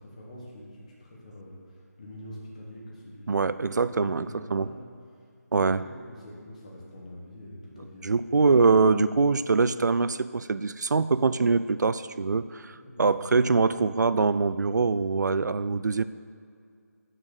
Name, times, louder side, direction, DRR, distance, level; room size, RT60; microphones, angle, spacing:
voice 1, 0.0-3.5 3.8-4.8 5.5-8.1 8.4-8.5 12.7-13.3, left 1 dB, 25° left, -3 dB, 1.2 m, -45 dB
voice 2, 3.3-4.7 5.5-5.8 8.0-16.0, right 4 dB, 90° right, 14 dB, 0.4 m, -24 dB
6.6 x 6.1 x 6.4 m, 2.2 s
figure-of-eight pair, 175°, 9 cm